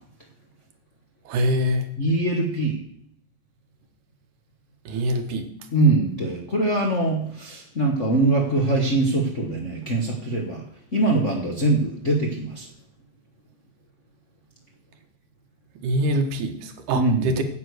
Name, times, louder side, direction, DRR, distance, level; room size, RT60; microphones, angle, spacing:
voice 1, 1.3-1.8 4.9-5.5 15.8-17.4, equal, 85° right, 6 dB, 2.8 m, -24 dB
voice 2, 2.0-2.8 5.7-10.6 10.9-12.7 16.9-17.4, right 2 dB, 40° left, -1 dB, 1.1 m, -22 dB
9.7 x 8.3 x 6.4 m, 0.69 s
omnidirectional pair, 3.4 m